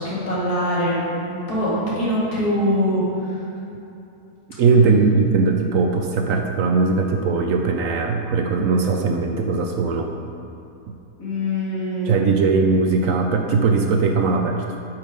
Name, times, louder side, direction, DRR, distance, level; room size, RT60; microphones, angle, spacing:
voice 1, 0.0-3.4 4.7-4.9 11.2-12.4, equal, 75° left, -7 dB, 2.6 m, -23 dB
voice 2, 4.6-10.1 12.0-14.6, right 4 dB, 70° right, 3 dB, 0.8 m, -19 dB
7.4 x 5.9 x 5.0 m, 2.8 s
omnidirectional pair, 1.7 m